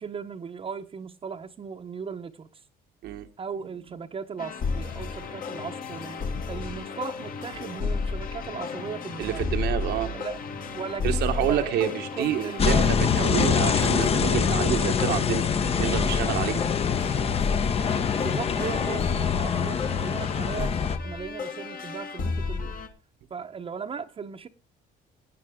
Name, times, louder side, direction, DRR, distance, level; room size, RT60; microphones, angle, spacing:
voice 1, 0.0-2.6 3.4-9.4 10.1-10.4 10.7-13.0 18.2-20.7 21.0-22.8 23.3-24.5, right 6 dB, 35° right, 0.8 m, -37 dB
sound 1, 4.4-22.9, left 4 dB, 55° left, 2.0 m, -32 dB
voice 2, 9.2-10.1 11.0-15.4 15.8-16.6, right 11 dB, 75° right, 1.1 m, -28 dB
sound 2, 12.6-21.0, left 7 dB, 35° left, 0.8 m, -25 dB
17.0 x 9.6 x 3.6 m
cardioid pair, 110°, 17 cm